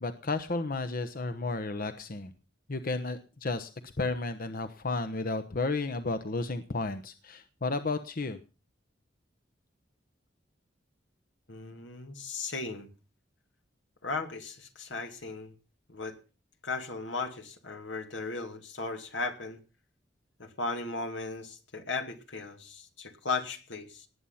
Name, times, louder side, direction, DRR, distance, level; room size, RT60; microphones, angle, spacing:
voice 1, 0.0-2.3 2.7-3.7 4.0-8.4, left 3 dB, 50° left, 10 dB, 1.0 m, -32 dB
voice 2, 11.5-12.9 14.0-15.5 15.9-16.2 16.6-19.6 20.4-24.1, left 3 dB, 85° left, 6 dB, 2.5 m, -36 dB
19.0 x 8.6 x 5.8 m, 0.35 s
head